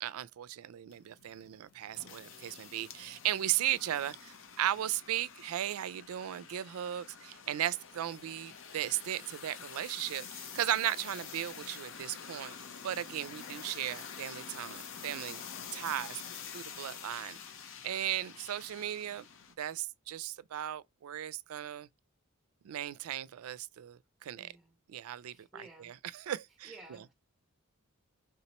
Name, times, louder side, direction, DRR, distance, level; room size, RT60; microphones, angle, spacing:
voice 1, 0.0-12.6 12.8-15.4 15.7-16.2 16.5-17.4 17.8-19.2 19.6-21.9 22.6-24.5 24.9-26.7, right 12 dB, 75° right, 0.3 m, -36 dB
sound 1, 0.9-19.5, left 7 dB, 65° left, 0.7 m, -47 dB
voice 2, 24.3-24.7 25.2-25.9 26.6-27.1, right 2 dB, ahead, 0.9 m, -54 dB
3.6 x 2.9 x 4.1 m
head